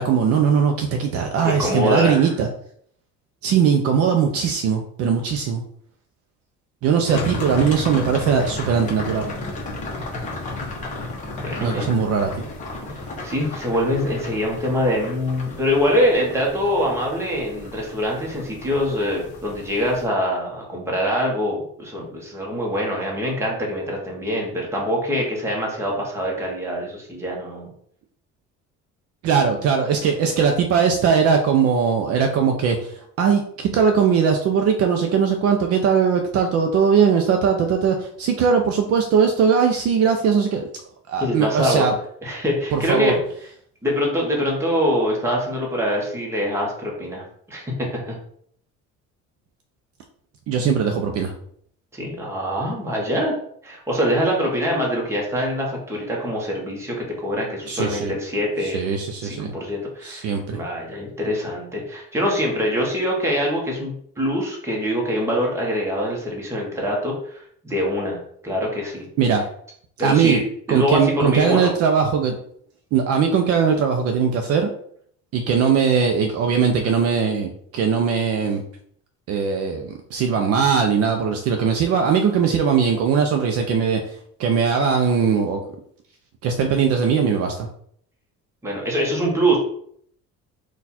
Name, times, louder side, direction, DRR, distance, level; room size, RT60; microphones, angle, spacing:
voice 1, 0.0-2.5 3.4-5.6 6.8-9.3 11.6-12.3 29.2-40.6 41.1-41.9 42.7-43.2 50.5-51.3 57.7-58.1 58.6-59.5 60.0-60.6 69.2-69.4 70.0-70.4 70.7-72.4 72.9-74.7 75.3-78.6 79.3-84.0 84.4-85.6 86.4-87.7, right 6 dB, 55° right, 4 dB, 0.5 m, -20 dB
voice 2, 1.4-2.3 11.3-11.9 13.2-27.7 41.2-41.9 42.2-43.2 43.8-47.7 48.1-48.2 51.9-53.3 53.6-58.9 59.2-69.1 70.0-70.4 70.7-71.7 88.6-89.6, equal, 10° right, -2 dB, 0.9 m, -24 dB
sound 1, 7.1-20.1, left 2 dB, 25° left, 0.9 m, -33 dB
4.2 x 2.3 x 4.1 m, 0.64 s
cardioid pair, 175°, 30 cm